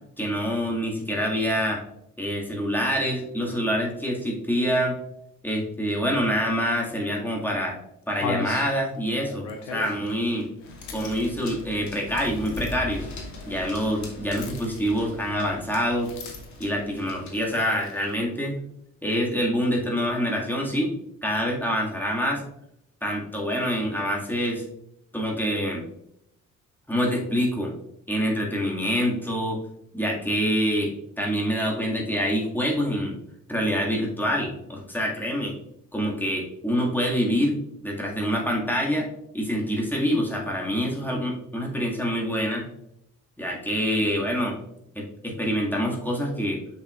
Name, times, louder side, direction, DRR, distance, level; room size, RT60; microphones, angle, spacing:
voice 1, 0.2-1.8 2.2-5.0 5.4-7.8 8.1-10.5 10.9-13.1 13.5-16.1 16.6-18.6 19.0-20.9 21.2-22.4 23.0-24.6 25.1-25.8 26.9-27.7 28.1-29.6 29.9-30.9 31.2-33.1 33.5-35.5 35.9-37.6 37.8-39.1 39.3-42.7 43.4-44.6 45.0-46.6, equal, 5° left, -2 dB, 2.0 m, -26 dB
sound 1, 6.9-7.0 7.5-7.6 8.1-12.9 14.3-15.2 15.9-16.7 17.4-18.2, left 4 dB, 70° left, 1.0 m, -38 dB
sound 2, 10.6-17.5, left 2 dB, 45° left, 1.7 m, -40 dB
7.4 x 5.7 x 2.4 m, 0.77 s
figure-of-eight pair, 40°, 39 cm